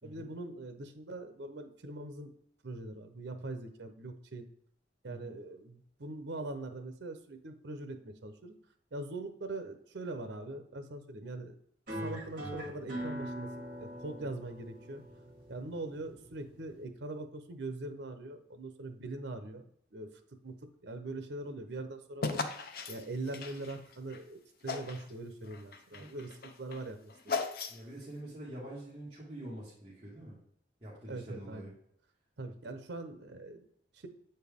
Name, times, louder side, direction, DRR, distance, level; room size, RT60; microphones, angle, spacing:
voice 1, 0.0-2.3 2.6-4.5 5.0-8.5 8.9-11.6 12.0-13.5 13.8-15.0 15.5-19.6 19.9-20.1 20.4-20.5 20.8-22.4 22.9-27.1 31.1-31.7 32.4-33.6 33.9-34.1, right 2 dB, 75° right, 7 dB, 0.7 m, -42 dB
sound 1, 11.9-16.9, equal, 50° right, 2.3 m, -42 dB
sound 2, 22.2-24.2 24.6-25.1 25.4-28.0, left 4 dB, 55° left, 0.6 m, -38 dB
voice 2, 27.7-30.4 30.8-31.7, right 1 dB, 25° right, -10 dB, 1.7 m, -46 dB
7.8 x 4.5 x 3.5 m, 0.69 s
head